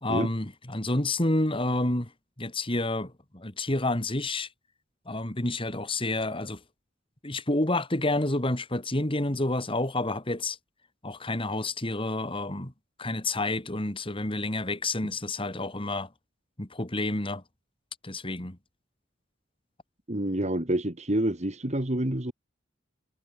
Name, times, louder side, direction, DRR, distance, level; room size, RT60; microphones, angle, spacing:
voice 1, 0.0-2.1 2.4-4.5 5.1-6.6 7.2-10.6 11.0-12.7 13.0-16.1 16.6-17.4 18.0-18.6, left 2 dB, 30° left, 2.5 m, -29 dB
voice 2, 20.1-22.3, right 1 dB, 35° right, 2.2 m, -28 dB
head